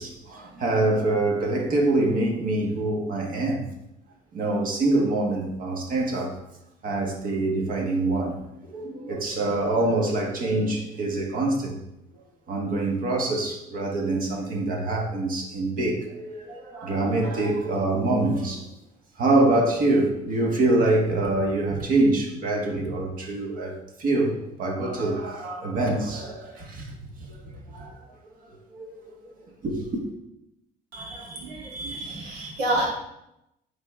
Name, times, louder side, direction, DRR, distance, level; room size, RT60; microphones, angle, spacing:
voice 1, 0.0-3.6 4.3-6.3 6.8-11.8 12.5-18.7 19.2-26.9 27.2-28.0 28.4-29.3 29.6-30.0, right 2 dB, 55° right, 1.4 m, -25 dB
voice 2, 30.9-32.9, right 1 dB, 85° right, 2.3 m, -29 dB
8.6 x 3.6 x 3.6 m
cardioid pair, 110°, 17 cm